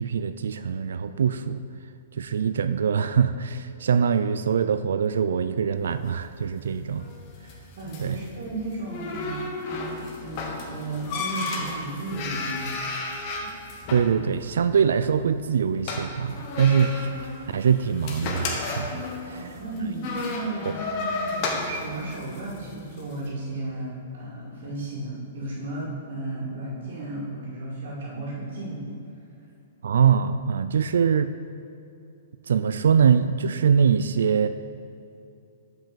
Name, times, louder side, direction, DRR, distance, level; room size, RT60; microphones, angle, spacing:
voice 1, 0.0-1.6 2.2-7.1 8.0-8.2 13.9-17.1 17.5-19.5 20.6-20.7 29.8-31.3 32.5-34.5, right 7 dB, 85° right, 11 dB, 0.3 m, -23 dB
sound 1, 5.9-23.2, left 3 dB, 30° left, 0.9 m, -34 dB
voice 2, 7.7-12.7 16.7-16.8 19.3-28.9, right 2 dB, 60° right, -8 dB, 2.0 m, -34 dB
5.9 x 5.4 x 6.9 m, 2.6 s
hypercardioid pair, 175°, 0 cm